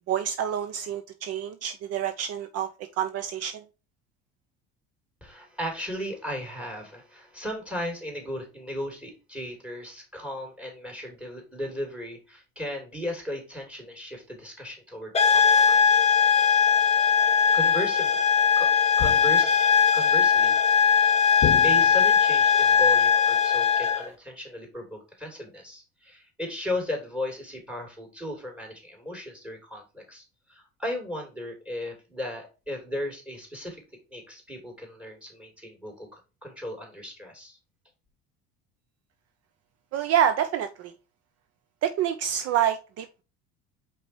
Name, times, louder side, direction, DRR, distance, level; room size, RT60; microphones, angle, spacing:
voice 1, 0.1-3.6 39.9-40.9 41.8-43.2, right 9 dB, 55° right, 0.6 m, -27 dB
voice 2, 5.2-16.0 17.5-18.2 18.6-18.7 19.0-19.7 19.9-20.8 21.6-33.8 34.1-37.6, left 1 dB, 5° right, 3.0 m, -36 dB
sound 1, 15.1-24.1, left 6 dB, 20° left, 1.2 m, -20 dB
sound 2, 19.0-19.6 21.4-22.2, left 11 dB, 50° left, 0.8 m, -30 dB
5.1 x 4.3 x 4.4 m
supercardioid pair, 105°, 30 cm